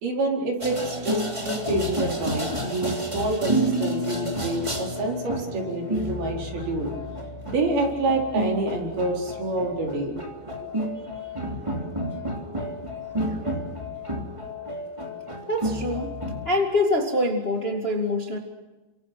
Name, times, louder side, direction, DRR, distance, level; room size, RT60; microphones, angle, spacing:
voice 1, 0.0-6.9 7.5-10.7, right 2 dB, 55° right, 0 dB, 6.0 m, -27 dB
sound 1, 0.6-16.5, equal, 10° right, 1.9 m, -30 dB
voice 2, 15.5-16.1 16.4-18.4, left 1 dB, 85° left, 2 dB, 0.5 m, -25 dB
29.5 x 25.5 x 6.0 m, 1.1 s
omnidirectional pair, 5.4 m